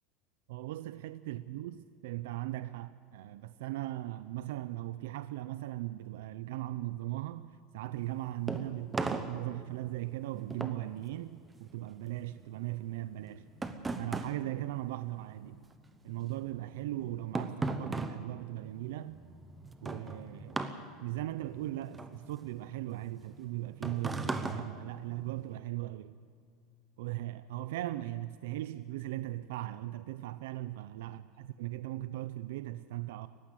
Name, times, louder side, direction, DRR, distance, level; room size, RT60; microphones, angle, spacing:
voice 1, 0.5-13.5 14.0-15.6 16.0-19.2 19.8-20.7 21.0-26.2 27.0-33.3, right 15 dB, 70° right, 0.6 m, -38 dB
sound 1, 8.0-15.6 15.9-25.6, right 3 dB, 10° right, 0.8 m, -39 dB
19.0 x 15.0 x 9.9 m
supercardioid pair, 175°, 0 cm